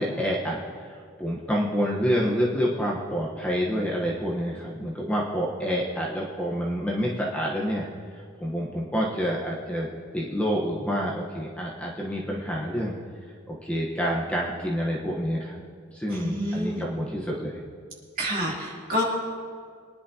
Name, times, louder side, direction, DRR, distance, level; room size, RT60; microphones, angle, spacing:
voice 1, 0.0-7.8 8.4-13.0 13.5-15.6 15.9-17.6, equal, 5° left, -4 dB, 1.0 m, -28 dB
voice 2, 16.1-16.9 18.2-19.0, equal, 40° right, -4 dB, 2.6 m, -28 dB
23.0 x 10.5 x 2.8 m, 2.1 s
head